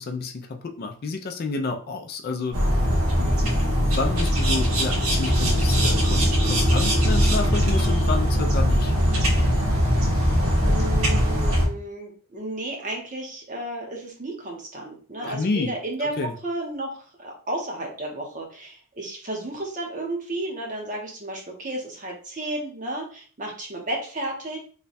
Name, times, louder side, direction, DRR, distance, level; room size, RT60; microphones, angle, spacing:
voice 1, 0.0-2.7 3.2-8.9 15.2-15.7 16.0-16.3, left 3 dB, 45° left, 5 dB, 0.4 m, -30 dB
sound 1, 2.5-11.7, equal, 85° right, 1.1 m, -21 dB
voice 2, 10.6-24.6, right 1 dB, 35° right, 0 dB, 0.9 m, -33 dB
3.2 x 2.2 x 4.0 m, 0.42 s
head